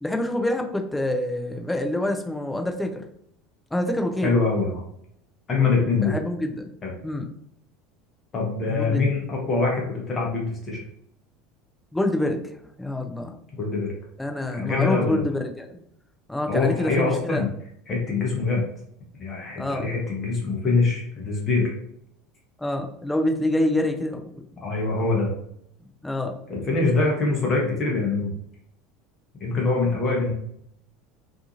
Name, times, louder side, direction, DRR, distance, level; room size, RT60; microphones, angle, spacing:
voice 1, 0.0-3.0 3.7-4.3 5.9-6.7 7.0-7.3 8.7-9.1 11.9-12.4 12.8-13.4 14.2-15.7 16.3-17.4 19.6-19.9 22.6-24.6 26.0-26.4, left 1 dB, 5° left, 3 dB, 0.4 m, -26 dB
voice 2, 4.2-4.8 5.5-6.2 6.8-6.9 8.3-10.8 13.6-13.9 14.6-15.2 16.5-17.5 17.9-18.6 19.2-21.7 24.6-25.3 26.5-28.3 29.4-30.3, left 3 dB, 30° left, -2 dB, 0.8 m, -24 dB
2.6 x 2.4 x 2.7 m, 0.70 s
figure-of-eight pair, 70°, 0 cm